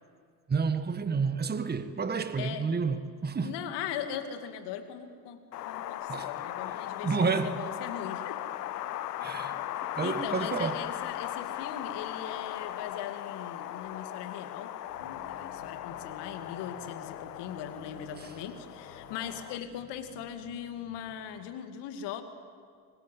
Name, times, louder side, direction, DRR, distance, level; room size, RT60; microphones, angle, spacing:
voice 1, 0.5-3.6 6.1-6.3 7.0-7.6 9.2-9.6 10.0-10.8, right 5 dB, 20° right, 1.5 m, -30 dB
voice 2, 3.4-5.4 5.7-8.4 10.0-14.7 15.0-22.2, left 9 dB, 60° left, 2.6 m, -40 dB
Wind, 5.5-19.6, left 13 dB, 85° left, 0.8 m, -38 dB
sound 1, 14.9-21.2, right 3 dB, 50° right, 4.7 m, -56 dB
25.0 x 20.0 x 9.5 m
hypercardioid pair, 65°, 46 cm